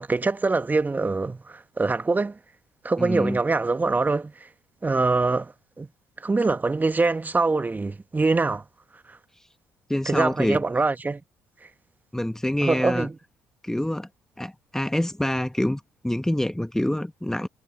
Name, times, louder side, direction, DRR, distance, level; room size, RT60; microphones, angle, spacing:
voice 1, 0.0-2.4 2.8-4.5 4.8-5.9 6.2-8.6 9.1-9.2 10.1-11.2 12.6-13.2, right 3 dB, 20° right, 1.7 m, -24 dB
voice 2, 3.0-3.4 9.9-10.6 12.1-13.1 13.6-14.1 14.4-17.5, left 1 dB, 5° left, 1.8 m, -26 dB
hypercardioid pair, 50°, 8 cm